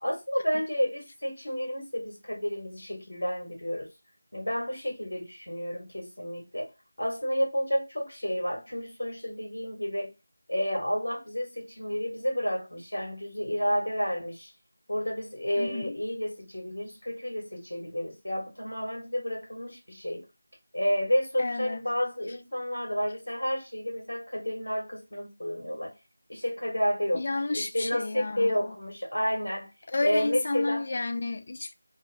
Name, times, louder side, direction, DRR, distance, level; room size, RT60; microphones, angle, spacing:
voice 1, 0.0-3.9 4.3-6.7 7.0-10.1 10.5-14.5 14.9-20.2 20.7-25.9 26.3-27.2 27.5-29.7 30.0-30.8, equal, 85° left, 1.6 m, -30 dB
voice 2, 15.6-16.0 21.4-21.8 27.1-28.7 29.9-31.7, left 3 dB, 45° left, 0.4 m, -31 dB
3.3 x 2.3 x 3.4 m
figure-of-eight pair, 170°, 0 cm